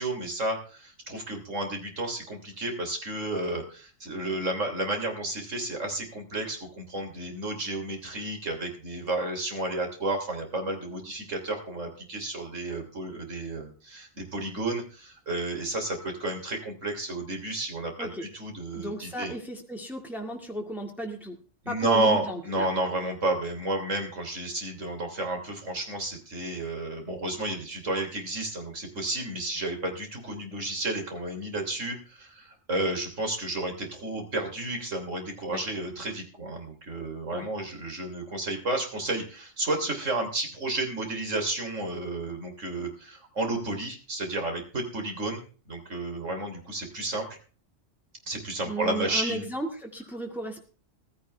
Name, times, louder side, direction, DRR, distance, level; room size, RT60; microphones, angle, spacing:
voice 1, 0.0-19.3 21.6-45.4 45.7-47.4 48.3-49.5, right 2 dB, 80° right, 4 dB, 3.7 m, -31 dB
voice 2, 18.7-21.4 21.7-22.7 35.5-35.6 37.3-37.5 48.7-50.6, right 1 dB, ahead, 1 dB, 2.0 m, -35 dB
15.5 x 13.5 x 3.4 m, 0.38 s
omnidirectional pair, 1.3 m